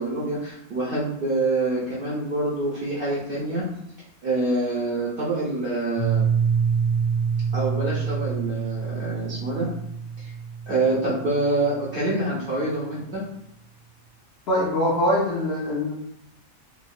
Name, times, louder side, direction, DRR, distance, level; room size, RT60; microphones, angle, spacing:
voice 1, 0.0-3.6 4.2-6.2 7.5-9.6 10.2-10.3 10.7-13.2, right 2 dB, 65° right, -7 dB, 0.5 m, -26 dB
Piano, 6.0-11.6, right 6 dB, 15° left, 1.3 m, -26 dB
voice 2, 14.5-15.9, left 1 dB, 65° left, -5 dB, 0.7 m, -23 dB
3.0 x 2.0 x 2.4 m, 0.76 s
omnidirectional pair, 1.5 m